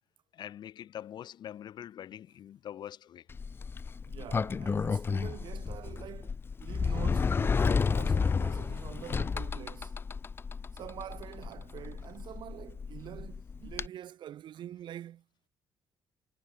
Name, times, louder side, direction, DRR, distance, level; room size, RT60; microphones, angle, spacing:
voice 1, 0.3-3.3, left 10 dB, 55° left, 3.0 m, -44 dB
Sliding door, 3.3-13.9, left 5 dB, 25° left, 1.9 m, -32 dB
voice 2, 4.1-10.0 10.7-15.2, right 11 dB, 60° right, 5.2 m, -45 dB
cardioid pair, 175°, 9 cm